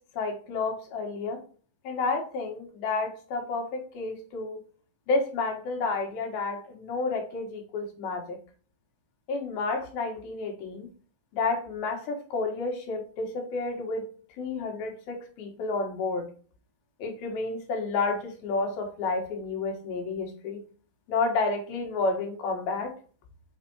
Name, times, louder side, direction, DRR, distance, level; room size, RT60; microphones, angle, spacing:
voice 1, 0.1-1.4 1.9-4.6 5.1-8.4 9.3-10.9 11.3-16.3 17.0-20.6 21.1-22.9, left 3 dB, 85° left, 2 dB, 3.3 m, -30 dB
6.6 x 4.8 x 3.1 m, 0.41 s
omnidirectional pair, 4.2 m